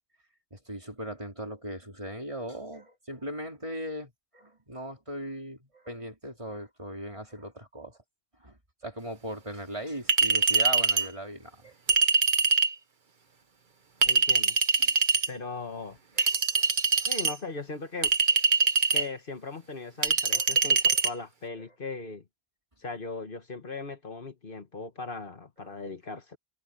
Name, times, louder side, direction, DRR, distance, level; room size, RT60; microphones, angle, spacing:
voice 1, 0.5-8.0 8.4-8.6 8.8-11.8 14.8-14.9 16.2-16.3 16.5-17.1 20.3-20.5 20.9-21.0 21.5-21.7 25.6-25.8, equal, 30° right, 4.0 m, -39 dB
Chink clink, 10.1-11.1 11.9-12.7 14.0-15.3 16.2-17.3 18.0-19.1 20.0-21.1, right 4 dB, 50° right, 1.3 m, -23 dB
voice 2, 14.0-14.6 15.3-16.0 17.1-18.1 18.9-22.2 22.8-26.4, left 3 dB, 60° left, 1.8 m, -38 dB
omnidirectional pair, 1.0 m